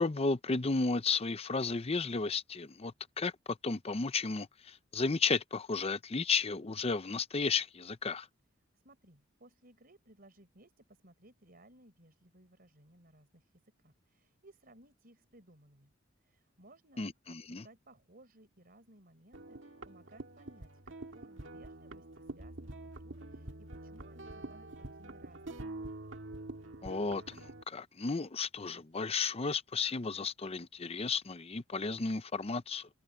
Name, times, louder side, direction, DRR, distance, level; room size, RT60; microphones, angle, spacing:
voice 1, 0.0-8.3 17.0-17.6 26.8-32.9, left 4 dB, 30° left, 0.6 m, -33 dB
voice 2, 8.7-15.9 16.2-25.6, right 1 dB, 50° right, 4.6 m, -61 dB
sound 1, 19.3-27.6, right 2 dB, 70° right, 2.1 m, -46 dB
head